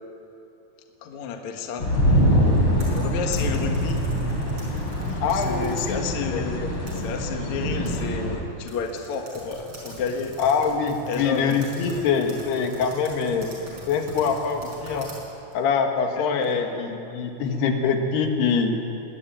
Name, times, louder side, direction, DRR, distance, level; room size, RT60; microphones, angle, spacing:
voice 1, 1.0-1.9 2.9-4.0 5.2-6.6 7.0-10.3 11.1-11.5 16.2-16.3, left 5 dB, 55° left, 4 dB, 2.3 m, -31 dB
sound 1, 1.8-8.4, equal, 30° left, 3.9 m, -24 dB
sound 2, 2.7-5.9 6.4-7.4 7.9-8.0 8.2-8.3 8.7-16.8, right 1 dB, 30° right, 6.5 m, -43 dB
voice 2, 5.2-6.7 10.4-13.5 13.9-15.1 15.5-18.8, left 5 dB, 70° left, 4 dB, 3.6 m, -24 dB
22.5 x 19.0 x 9.1 m, 2.9 s
omnidirectional pair, 4.9 m